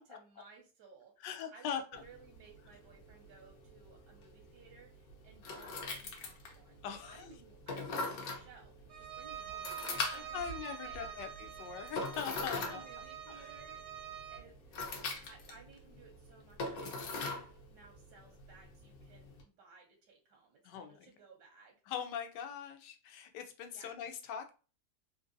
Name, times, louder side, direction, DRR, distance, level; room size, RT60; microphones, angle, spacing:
voice 1, 0.0-6.8 7.0-10.4 10.8-11.3 12.5-13.8 14.3-14.9 15.2-21.8 23.7-24.0, right 4 dB, 90° right, 1 dB, 1.4 m, -58 dB
voice 2, 1.2-2.0 6.8-7.3 10.0-12.9 13.3-13.5 20.6-21.1 21.9-24.5, left 8 dB, 85° left, 6 dB, 1.2 m, -42 dB
sound 1, 1.9-19.4, left 3 dB, 65° left, 1.1 m, -43 dB
Bowed string instrument, 8.9-14.5, right 9 dB, 65° right, 0.7 m, -46 dB
3.5 x 2.6 x 2.5 m, 0.35 s
omnidirectional pair, 1.8 m